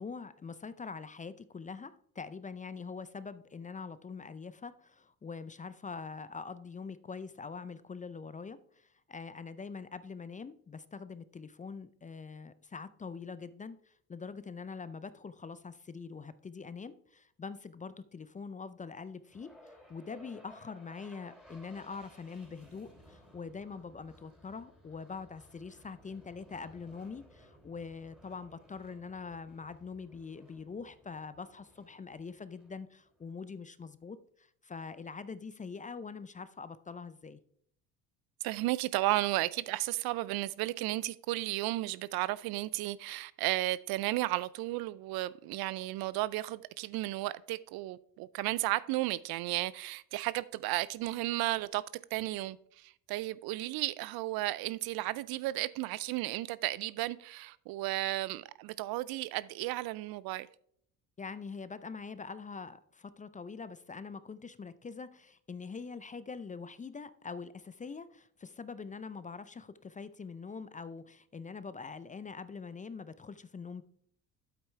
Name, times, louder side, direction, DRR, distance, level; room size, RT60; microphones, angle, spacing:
voice 1, 0.0-37.4 61.2-73.8, left 5 dB, 20° left, 0.5 m, -44 dB
sound 1, 19.2-33.4, equal, ahead, 3.4 m, -59 dB
voice 2, 38.4-51.8 52.1-60.5, right 17 dB, 60° right, 0.5 m, -34 dB
8.8 x 8.1 x 3.3 m
hypercardioid pair, 60°, 43 cm